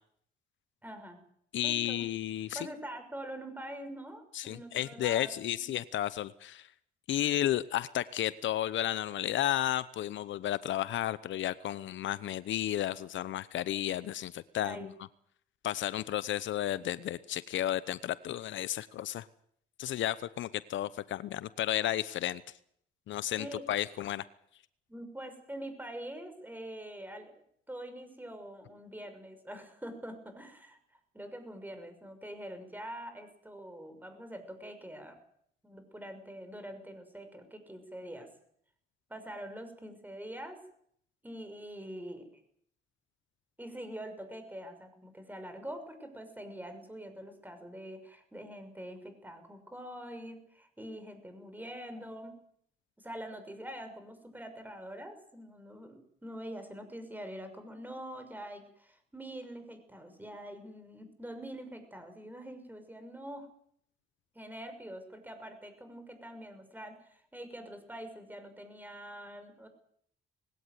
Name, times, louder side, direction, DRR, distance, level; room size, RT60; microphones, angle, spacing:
voice 1, 0.8-1.2 1.6-2.0 2.5-5.7 14.6-14.9 23.3-23.6 24.9-27.3 27.7-30.8 31.1-35.2 35.6-38.3 39.1-40.6 41.2-42.3 43.6-52.4 53.0-63.5 64.3-69.7, right 1 dB, 10° right, 8 dB, 6.4 m, -44 dB
voice 2, 1.5-2.7 4.3-6.7 7.1-14.9 15.6-19.2 19.8-22.4 23.1-24.2, left 12 dB, 70° left, 17 dB, 0.9 m, -33 dB
20.5 x 17.5 x 9.5 m, 0.67 s
cardioid pair, 90°, 20 cm